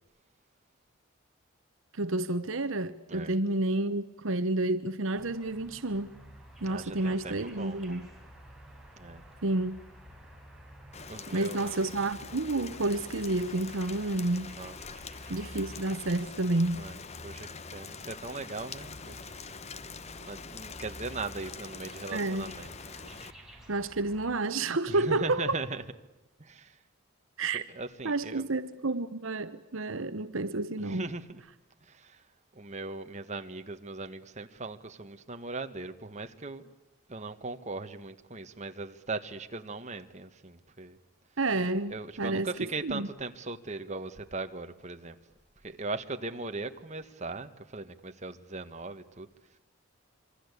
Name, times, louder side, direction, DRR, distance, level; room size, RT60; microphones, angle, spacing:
voice 1, 1.9-6.1 6.6-8.1 9.4-9.8 11.3-14.6 15.3-16.9 22.1-22.5 23.7-25.6 27.4-27.6 28.0-31.1 41.4-43.1, right 2 dB, 65° right, 1.0 m, -30 dB
sound 1, 5.1-24.3, equal, ahead, 5.1 m, -51 dB
voice 2, 6.6-7.8 9.0-9.2 11.1-12.0 14.5-14.7 16.7-19.3 20.1-23.1 24.9-25.8 26.4-26.8 27.5-28.4 30.8-31.4 31.8-32.2 32.5-36.7 37.1-41.0 41.9-45.2 45.6-49.3, right 3 dB, 30° right, 1.6 m, -39 dB
Rain, 10.9-23.3, left 5 dB, 30° left, 0.9 m, -45 dB
27.0 x 24.0 x 8.4 m
head